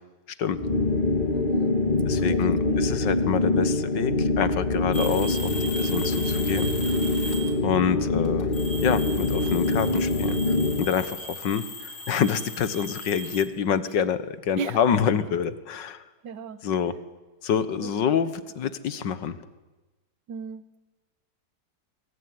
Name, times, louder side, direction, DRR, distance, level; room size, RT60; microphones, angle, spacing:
sound 1, 0.5-10.9, left 2 dB, 30° left, 2.3 m, -25 dB
voice 1, 1.3-1.8 2.3-2.8 13.3-13.4 14.6-14.8 16.2-16.6 17.8-17.9 20.3-20.8, right 6 dB, 85° right, 14 dB, 1.8 m, -35 dB
voice 2, 2.1-5.5 5.8-6.7 7.6-8.5 8.8-16.0 16.6-16.9 17.4-19.4, left 7 dB, 85° left, 14 dB, 1.9 m, -27 dB
sound 2, 4.9-7.8 8.2-13.4, equal, 60° left, 4.2 m, -37 dB
25.0 x 23.5 x 9.7 m, 1.2 s
omnidirectional pair, 1.9 m